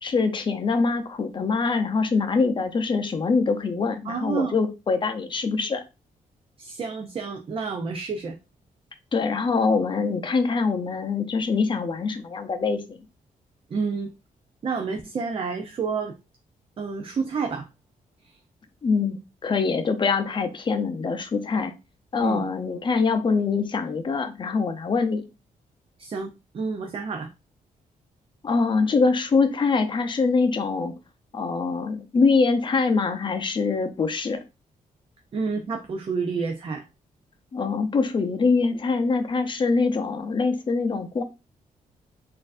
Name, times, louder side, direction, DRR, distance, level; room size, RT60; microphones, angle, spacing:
voice 1, 0.0-5.8 9.1-13.0 18.8-21.7 22.1-25.2 28.4-30.9 31.3-34.4 37.5-41.2, left 4 dB, 35° left, 0.6 m, -24 dB
voice 2, 4.1-4.6 6.6-8.4 13.7-14.1 14.6-16.2 16.8-17.7 18.2-18.4 22.2-22.5 26.0-27.3 35.3-36.8, right 5 dB, 40° right, 0.5 m, -29 dB
4.2 x 2.6 x 2.5 m
cardioid pair, 110°, 15 cm